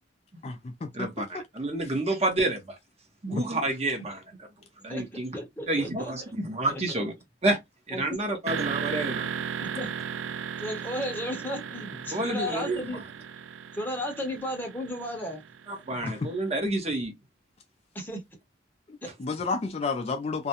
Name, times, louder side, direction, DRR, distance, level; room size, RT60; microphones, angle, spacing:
voice 1, 0.4-1.4 3.3-3.4 16.0-16.3 18.9-20.5, left 4 dB, 35° left, 0.3 m, -31 dB
voice 2, 0.9-2.8 3.2-4.2 4.8-5.3 5.7-7.1 7.4-7.6 7.9-9.3 12.1-13.0 15.7-17.1, right 2 dB, 35° right, 0.8 m, -29 dB
voice 3, 4.9-6.1 6.7-7.0 7.9-8.2 9.6-10.0 10.6-13.0 13.7-15.4 17.9-18.2, equal, 10° left, 0.7 m, -34 dB
sound 1, 8.5-16.2, right 7 dB, 85° right, 0.3 m, -36 dB
2.4 x 2.1 x 2.7 m
head